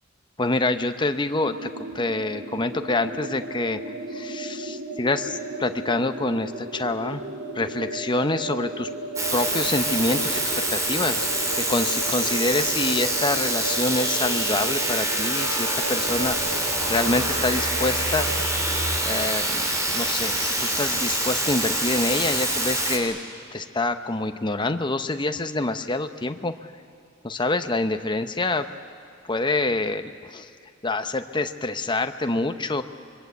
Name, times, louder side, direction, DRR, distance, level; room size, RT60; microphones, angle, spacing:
voice 1, 0.4-3.8 4.1-7.2 7.5-8.9 9.3-11.3 11.5-18.3 18.8-23.2 23.5-26.5 27.2-28.7 29.3-30.5 30.8-32.8, left 2 dB, 20° left, 8 dB, 0.8 m, -26 dB
sound 1, 1.4-19.0, right 1 dB, 65° right, 3.1 m, -35 dB
sound 2, 9.2-23.0, right 1 dB, 15° right, 3.4 m, -25 dB
25.5 x 23.0 x 8.4 m, 2.3 s
head